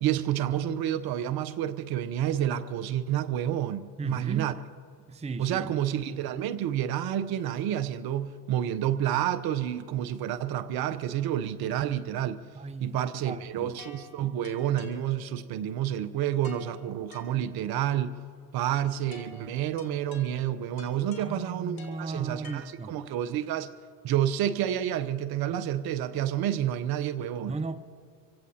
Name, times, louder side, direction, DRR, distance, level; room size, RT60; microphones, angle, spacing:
voice 1, 0.0-4.5 5.4-12.4 12.8-18.2 18.5-23.7 24.0-27.6, right 11 dB, 50° right, 0.8 m, -29 dB
voice 2, 4.0-4.6 5.1-5.7 12.5-13.0 13.2-13.7 21.2-23.0 27.4-27.8, right 4 dB, 15° right, 0.7 m, -36 dB
sound 1, 13.8-15.6 16.4-17.9 19.1-23.2, left 3 dB, 45° left, 3.2 m, -50 dB
26.5 x 16.5 x 2.8 m
hypercardioid pair, 85°, 48 cm